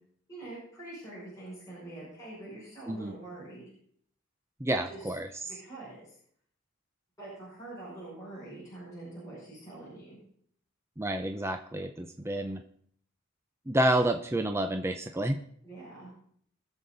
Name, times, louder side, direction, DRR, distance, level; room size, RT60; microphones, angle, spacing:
voice 1, 0.3-3.7 4.9-5.1 5.5-6.2 7.2-10.2 15.6-16.1, right 2 dB, 15° left, -9 dB, 6.4 m, -45 dB
voice 2, 4.6-5.3 11.0-12.6 13.7-15.4, right 1 dB, 15° right, 5 dB, 0.6 m, -29 dB
21.0 x 7.2 x 4.0 m, 0.64 s
head